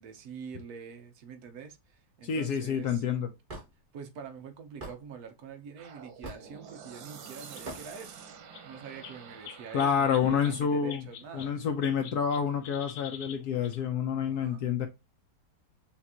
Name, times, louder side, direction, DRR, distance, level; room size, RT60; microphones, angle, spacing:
voice 1, 0.0-3.0 3.9-8.2 8.6-11.5 14.2-14.6, right 6 dB, 65° right, 1.1 m, -45 dB
voice 2, 2.2-3.3 9.7-11.0 11.3-14.9, left 7 dB, 70° left, 1.1 m, -28 dB
Hammer / Wood, 3.5-3.7 4.8-5.0 6.2-6.5 7.7-7.8, right 2 dB, 30° right, 1.2 m, -40 dB
sound 1, 5.8-10.8, right 6 dB, 90° right, 1.5 m, -49 dB
sound 2, 6.5-6.6 7.3-7.4 7.5-7.7 7.9-8.0 8.5-8.7 9.0-11.5 11.8-13.8, left 9 dB, 85° left, 1.4 m, -46 dB
5.7 x 2.5 x 2.8 m
omnidirectional pair, 2.0 m